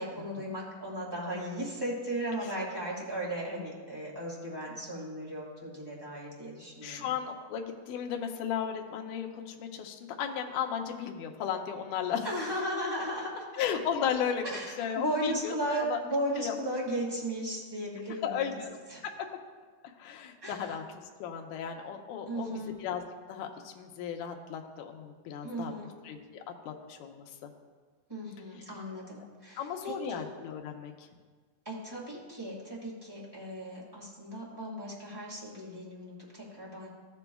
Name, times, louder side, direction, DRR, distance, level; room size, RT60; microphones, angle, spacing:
voice 1, 0.0-7.1 12.2-13.4 14.4-18.5 18.9-19.0 20.4-20.8 22.3-22.7 25.4-25.9 28.1-30.2 31.6-36.9, right 1 dB, 15° right, -5 dB, 1.0 m, -36 dB
voice 2, 6.8-12.5 13.6-14.4 14.8-15.5 15.8-16.0 16.4-16.6 18.2-18.8 20.0-20.8 21.2-23.0 23.3-25.7 26.0-27.5 29.6-31.1, left 8 dB, 75° left, 3 dB, 2.2 m, -35 dB
14.5 x 6.9 x 2.3 m, 1.5 s
omnidirectional pair, 3.9 m